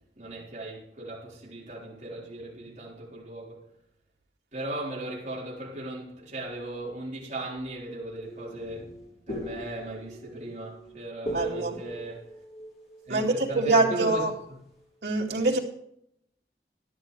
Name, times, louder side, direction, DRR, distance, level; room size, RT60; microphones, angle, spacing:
voice 1, 0.2-3.7 4.5-8.9 9.3-12.3 13.1-14.2, right 1 dB, 45° right, 4.0 m, -37 dB
sound 1, 8.2-13.8, right 1 dB, 35° left, 2.7 m, -39 dB
voice 2, 11.3-11.8 13.1-14.3 15.0-15.6, right 2 dB, 80° right, 2.4 m, -24 dB
13.5 x 11.5 x 3.3 m
head